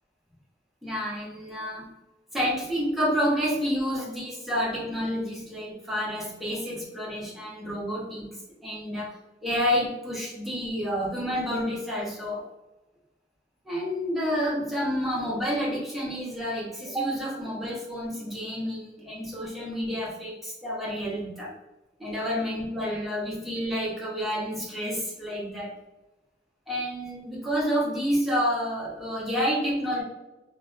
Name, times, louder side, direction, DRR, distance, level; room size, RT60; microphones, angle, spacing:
voice 1, 0.8-1.9 2.3-8.3 8.6-9.1 9.4-12.4 13.6-21.5 22.0-25.7 26.7-30.0, equal, ahead, -7 dB, 0.7 m, -29 dB
2.5 x 2.1 x 2.6 m, 1.1 s
head